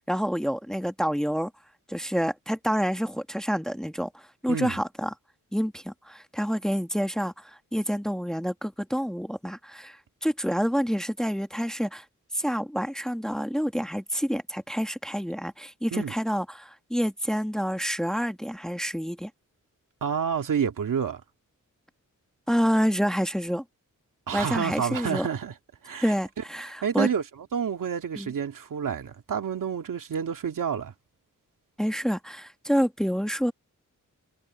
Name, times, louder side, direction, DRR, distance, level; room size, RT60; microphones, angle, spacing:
voice 1, 0.1-1.5 1.9-5.1 5.5-12.0 12.3-19.3 22.5-23.6 24.3-25.3 26.0-27.1 28.2-28.3 31.8-33.5, equal, ahead, 1.3 m, -28 dB
voice 2, 20.0-21.2 24.3-25.5 25.8-26.1 26.8-27.2 27.5-30.9, right 7 dB, 80° right, 2.2 m, -29 dB
wide cardioid pair, 155°, 32 cm